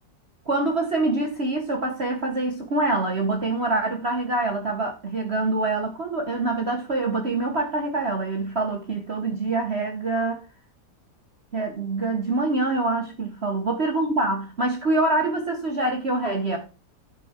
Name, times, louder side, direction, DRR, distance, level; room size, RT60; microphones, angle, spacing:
voice 1, 0.5-10.4 11.5-16.6, right 2 dB, 40° right, 1.3 m, -25 dB
10.5 x 6.0 x 4.4 m
omnidirectional pair, 2.0 m